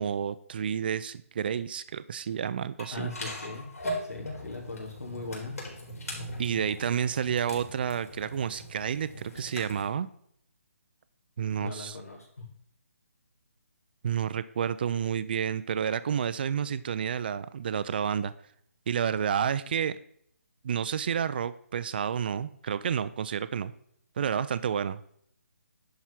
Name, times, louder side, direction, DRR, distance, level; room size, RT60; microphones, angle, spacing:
voice 1, 0.0-3.1 6.4-10.1 11.4-12.0 14.0-18.3 18.9-20.0 20.6-23.7 24.2-25.0, right 8 dB, 40° right, 14 dB, 0.4 m, -30 dB
sound 1, 2.8-9.9, equal, 75° left, 4.3 m, -40 dB
voice 2, 2.9-3.7 4.0-5.5 11.6-12.4, left 3 dB, 90° left, -3 dB, 3.7 m, -39 dB
10.5 x 4.8 x 5.8 m, 0.66 s
hypercardioid pair, 165°, 8 cm